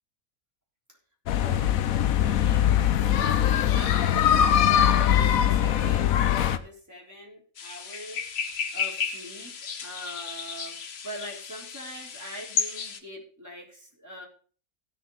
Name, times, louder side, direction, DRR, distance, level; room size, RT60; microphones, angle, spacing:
sound 1, 1.3-6.6, left 10 dB, 75° left, 1.1 m, -22 dB
voice 1, 1.3-2.7 3.2-8.2 8.7-14.3, equal, 10° right, -3 dB, 3.6 m, -42 dB
sound 2, 7.6-13.0, left 6 dB, 50° left, 1.1 m, -33 dB
17.5 x 6.7 x 4.0 m, 0.41 s
omnidirectional pair, 1.5 m